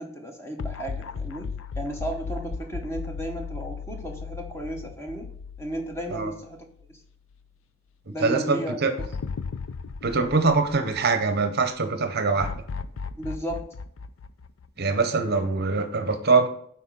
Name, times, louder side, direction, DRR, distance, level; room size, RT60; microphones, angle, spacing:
voice 1, 0.0-5.3 5.6-7.0 8.1-8.8 13.1-13.7, right 1 dB, 10° left, 2 dB, 1.0 m, -34 dB
sound 1, 0.6-6.9 7.3-7.4 9.0-11.4 12.4-15.2, left 5 dB, 65° left, 0.4 m, -36 dB
voice 2, 8.1-8.9 10.0-12.5 14.8-16.5, right 4 dB, 45° right, 7 dB, 0.7 m, -23 dB
9.7 x 4.2 x 3.9 m, 0.65 s
head